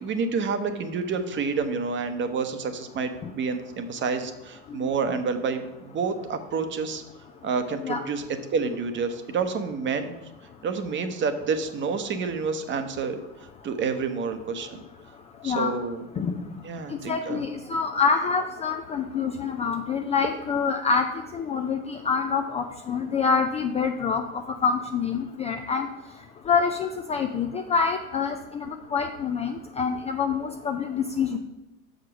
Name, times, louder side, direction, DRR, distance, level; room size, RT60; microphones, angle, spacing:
voice 1, 0.0-7.0 7.4-8.3 8.5-10.1 10.6-13.2 13.6-14.8 15.4-16.1 16.6-17.4, right 5 dB, 30° right, 9 dB, 0.9 m, -29 dB
voice 2, 15.4-15.8 16.2-16.4 17.1-21.1 21.3-25.9 26.5-31.4, left 5 dB, 15° left, 4 dB, 0.4 m, -26 dB
6.6 x 5.1 x 6.1 m, 0.94 s
hypercardioid pair, 90°, 40 cm